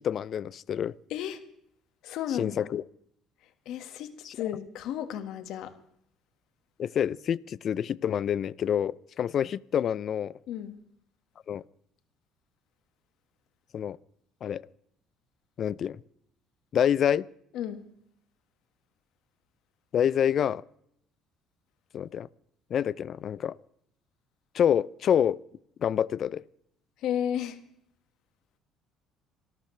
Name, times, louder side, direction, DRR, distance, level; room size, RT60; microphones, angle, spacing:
voice 1, 0.0-0.9 2.3-2.8 4.2-4.5 6.8-10.3 11.5-11.6 13.7-14.0 14.4-14.6 15.6-16.0 16.7-17.3 19.9-20.6 21.9-22.3 22.7-23.5 24.5-25.4 25.8-26.4, left 9 dB, 50° left, 22 dB, 0.5 m, -27 dB
voice 2, 2.0-2.7 3.7-5.7 10.5-10.8 17.5-17.8 27.0-27.6, left 10 dB, 75° left, 9 dB, 1.8 m, -33 dB
27.0 x 13.5 x 3.4 m, 0.70 s
supercardioid pair, 90°, 0 cm